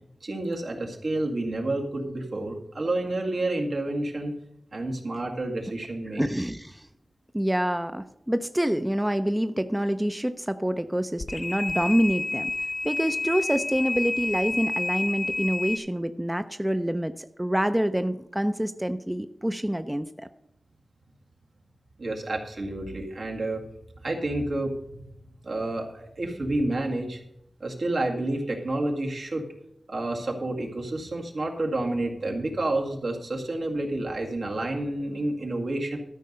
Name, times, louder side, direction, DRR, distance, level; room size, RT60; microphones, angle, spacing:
voice 1, 0.2-4.3 4.7-6.2 22.0-23.6 24.0-24.7 25.4-27.2 27.6-29.5 29.9-36.0, right 2 dB, 75° right, 0 dB, 2.0 m, -29 dB
voice 2, 6.1-6.9 7.3-12.5 12.8-20.3, equal, 10° right, 9 dB, 0.5 m, -27 dB
sound 1, 11.2-15.8, left 3 dB, 50° left, 0.8 m, -30 dB
13.0 x 5.3 x 6.6 m, 0.83 s
wide cardioid pair, 105°, 0 cm